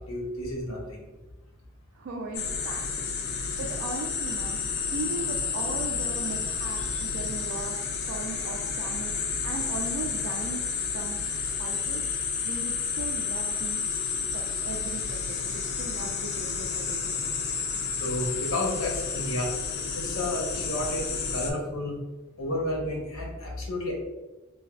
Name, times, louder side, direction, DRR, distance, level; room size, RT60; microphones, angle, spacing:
voice 1, 0.1-1.0 6.9-7.0 18.0-19.5 19.9-22.0 22.4-23.9, left 1 dB, 85° left, -1 dB, 0.7 m, -31 dB
voice 2, 1.9-4.6 4.9-7.8 8.1-11.2 11.6-12.0 12.4-13.8 14.3-17.3, right 3 dB, 70° right, -2 dB, 0.3 m, -38 dB
sound 1, 2.3-21.5, left 5 dB, 50° left, 0.3 m, -31 dB
3.3 x 2.1 x 2.2 m, 1.1 s
head